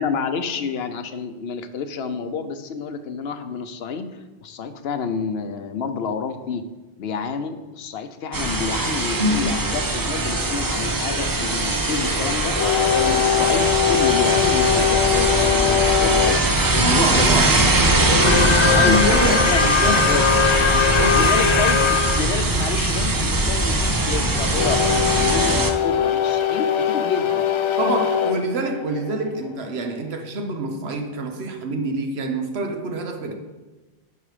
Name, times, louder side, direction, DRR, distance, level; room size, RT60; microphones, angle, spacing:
voice 1, 0.0-4.1 4.4-6.6 7.0-18.5 18.7-19.2 19.5-20.2 21.1-24.8 25.1-27.5, left 5 dB, 75° left, 9 dB, 0.9 m, -29 dB
sound 1, 8.3-25.7, right 2 dB, 25° right, 0.5 m, -21 dB
voice 2, 9.2-9.7 16.8-17.6 18.2-20.2 20.8-21.3 27.8-33.3, right 1 dB, 80° right, 5 dB, 1.2 m, -26 dB
sound 2, 12.5-16.4 18.1-22.2 24.6-29.4, left 7 dB, 55° left, 0.3 m, -21 dB
11.0 x 4.9 x 4.9 m, 1.2 s
omnidirectional pair, 1.1 m